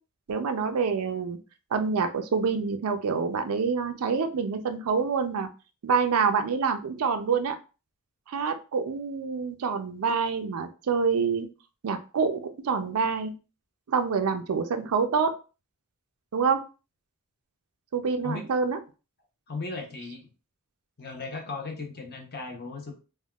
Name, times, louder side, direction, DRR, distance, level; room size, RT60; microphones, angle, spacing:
voice 1, 0.3-1.4 1.7-5.5 5.8-7.6 8.3-11.5 11.8-13.3 13.9-15.3 16.3-16.6 17.9-18.8, right 5 dB, 80° right, 8 dB, 0.4 m, -26 dB
voice 2, 19.5-20.3 21.0-22.9, left 3 dB, 45° left, 3 dB, 0.7 m, -36 dB
3.4 x 2.2 x 2.3 m, 0.33 s
head